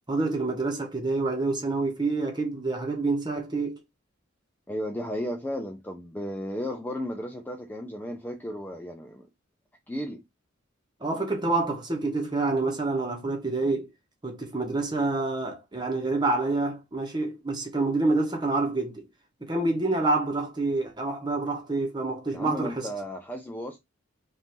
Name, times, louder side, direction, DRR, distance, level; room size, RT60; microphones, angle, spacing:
voice 1, 0.1-3.8 11.0-13.9 14.2-19.1 19.4-22.9, right 3 dB, 20° right, 1.0 m, -27 dB
voice 2, 4.7-9.3 9.9-10.2 22.3-23.8, equal, 10° left, 0.4 m, -34 dB
5.3 x 2.6 x 3.0 m
head